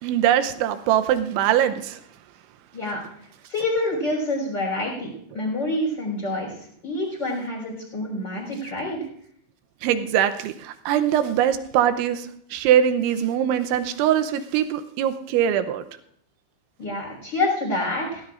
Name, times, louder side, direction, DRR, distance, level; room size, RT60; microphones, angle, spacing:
voice 1, 0.0-2.0 9.8-15.8, right 10 dB, 80° right, 9 dB, 3.0 m, -22 dB
voice 2, 2.7-3.0 3.5-6.5 6.8-9.0 16.8-18.2, left 2 dB, 20° left, -4 dB, 5.0 m, -27 dB
21.0 x 17.0 x 2.5 m, 0.67 s
omnidirectional pair, 5.6 m